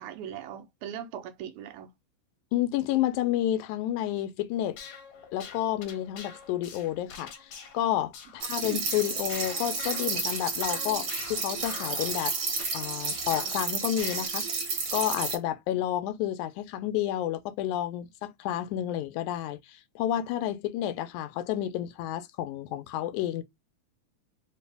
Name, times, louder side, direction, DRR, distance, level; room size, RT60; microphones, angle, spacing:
voice 1, 0.0-1.9 8.6-8.8, right 9 dB, 80° right, 1.9 m, -39 dB
voice 2, 2.5-4.8 5.3-12.4 12.7-14.5 14.9-23.4, left 12 dB, 80° left, 1.9 m, -30 dB
sound 1, 4.7-13.7 14.0-14.3, left 7 dB, 65° left, 1.5 m, -45 dB
sound 2, 8.4-15.3, right 4 dB, 50° right, 1.5 m, -31 dB
4.6 x 2.8 x 3.3 m
omnidirectional pair, 3.6 m